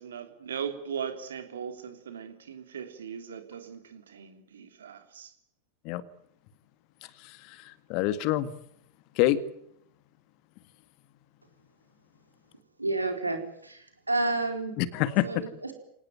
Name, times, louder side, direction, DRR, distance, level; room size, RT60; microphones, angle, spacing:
voice 1, 0.0-5.3, right 7 dB, 65° right, 8 dB, 3.2 m, -39 dB
voice 2, 7.2-8.5 9.2-9.4 14.8-15.4, left 14 dB, 45° left, 14 dB, 1.8 m, -27 dB
voice 3, 12.8-14.7 15.2-15.7, right 2 dB, 85° right, 6 dB, 4.3 m, -30 dB
25.5 x 19.0 x 9.2 m, 0.71 s
figure-of-eight pair, 90°, 0 cm